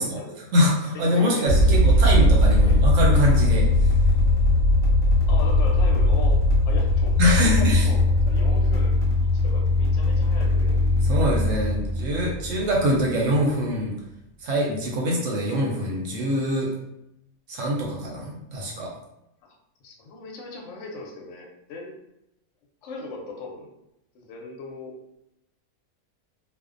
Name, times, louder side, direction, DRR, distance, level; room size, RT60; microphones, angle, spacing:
voice 1, 0.0-0.3 0.9-2.1 2.6-2.7 5.3-8.9 9.3-11.1 19.8-21.9 22.8-23.7 24.1-24.9, left 3 dB, 65° left, 0 dB, 0.8 m, -38 dB
voice 2, 0.5-3.9 7.2-7.9 11.0-13.9 14.4-16.7 17.5-18.9, equal, 70° right, -2 dB, 0.9 m, -24 dB
sound 1, 1.5-13.2, left 1 dB, 20° left, 0.9 m, -19 dB
2.5 x 2.0 x 2.4 m, 0.85 s
omnidirectional pair, 1.5 m